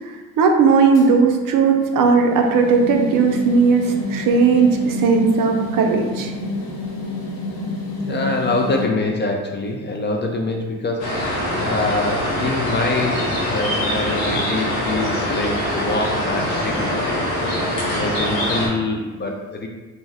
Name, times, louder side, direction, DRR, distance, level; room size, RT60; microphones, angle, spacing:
voice 1, 0.4-6.3, right 5 dB, 55° right, 3 dB, 0.5 m, -16 dB
sound 1, 0.9-8.9, left 1 dB, 55° left, 0.8 m, -29 dB
voice 2, 8.0-17.2 17.9-19.7, left 2 dB, 30° left, 1 dB, 0.4 m, -25 dB
sound 2, 11.0-18.7, left 1 dB, 90° left, 0.9 m, -23 dB
2.7 x 2.1 x 3.3 m, 1.3 s
supercardioid pair, 60°, 41 cm